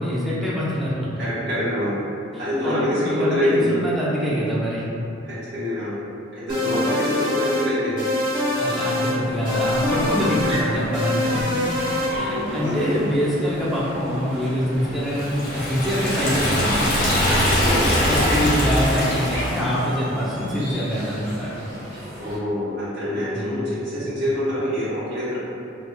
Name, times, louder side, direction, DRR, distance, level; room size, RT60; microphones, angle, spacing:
voice 1, 0.0-1.3 2.3-4.8 6.6-6.7 8.6-11.6 12.2-17.0 18.0-21.5 23.3-23.6, equal, ahead, -8 dB, 0.5 m, -25 dB
voice 2, 1.2-1.9 2.4-3.8 5.3-5.9 6.5-8.0 12.1-12.9 17.4-17.8 22.2-25.4, left 1 dB, 60° right, -12 dB, 1.4 m, -25 dB
sound 1, 6.5-7.7 8.0-9.2 9.5-10.6 10.9-12.1, left 1 dB, 25° right, 0.9 m, -24 dB
sound 2, 9.2-22.4, equal, 90° right, 1.1 m, -35 dB
Liquid, 15.1-19.8, equal, 50° left, 0.8 m, -22 dB
3.4 x 3.2 x 2.2 m, 2.6 s
head